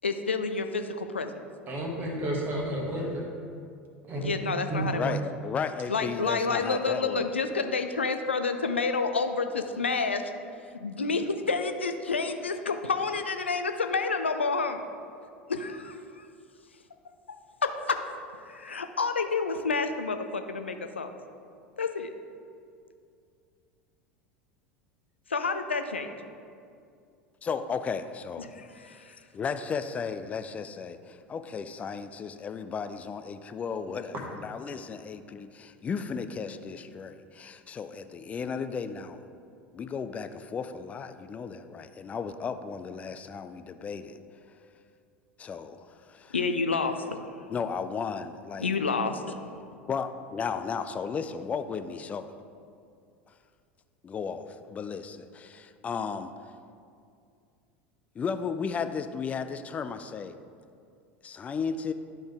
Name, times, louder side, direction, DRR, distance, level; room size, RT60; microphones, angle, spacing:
voice 1, 0.0-1.4 4.2-5.1 5.9-10.2 10.8-14.8 15.5-16.3 17.6-18.0 18.5-21.1 21.8-22.1 25.3-26.1 28.4-29.2 46.3-47.4 48.6-49.4, left 4 dB, 80° left, 7 dB, 0.4 m, -29 dB
voice 2, 1.7-3.2 4.1-4.3 4.7-4.9, right 1 dB, 30° right, 0 dB, 1.3 m, -31 dB
voice 3, 4.9-7.3 27.4-28.5 29.3-39.2 39.7-44.2 45.4-46.3 47.5-48.7 49.9-52.3 54.0-56.3 58.2-60.4 61.2-61.9, left 6 dB, 20° left, 10 dB, 0.4 m, -34 dB
11.0 x 3.9 x 3.5 m, 2.4 s
figure-of-eight pair, 75°, 6 cm